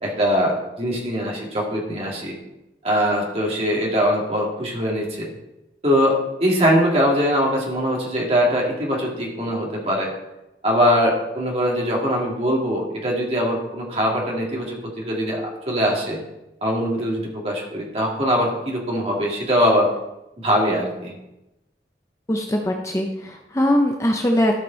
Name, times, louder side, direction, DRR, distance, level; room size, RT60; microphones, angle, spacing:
voice 1, 0.0-2.4 2.8-5.3 5.8-10.1 10.6-16.2 16.6-19.9 20.4-21.1, equal, 35° right, -2 dB, 2.4 m, -22 dB
voice 2, 22.3-24.6, equal, 15° left, 2 dB, 0.7 m, -21 dB
13.5 x 5.2 x 4.0 m, 0.92 s
head